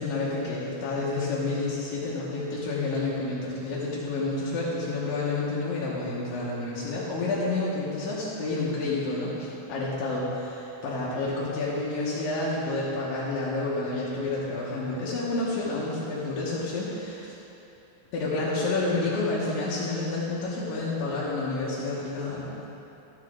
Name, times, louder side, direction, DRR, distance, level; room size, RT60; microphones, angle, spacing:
voice 1, 0.0-17.3 18.1-22.5, left 2 dB, 80° left, -8 dB, 3.0 m, -29 dB
14.0 x 7.2 x 3.7 m, 3.0 s
omnidirectional pair, 3.9 m